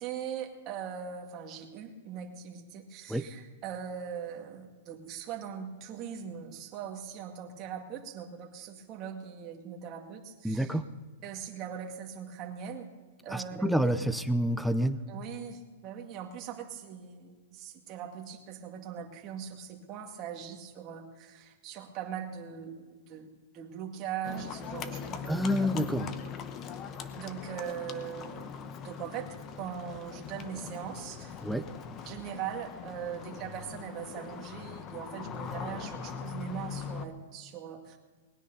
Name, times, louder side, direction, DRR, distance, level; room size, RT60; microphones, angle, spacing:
voice 1, 0.0-10.8 11.2-12.9 13.2-13.7 15.1-25.5 27.1-28.6 28.8-29.3 29.6-31.4 32.1-38.0, right 8 dB, 30° right, 2 dB, 1.9 m, -40 dB
voice 2, 10.4-10.8 13.3-15.0 25.3-26.1 31.4-31.6, equal, ahead, 10 dB, 0.6 m, -28 dB
Livestock farm animals working animals, 24.2-37.1, left 7 dB, 30° left, 0.9 m, -41 dB
19.5 x 9.8 x 5.4 m, 1.4 s
hypercardioid pair, 150°, 0 cm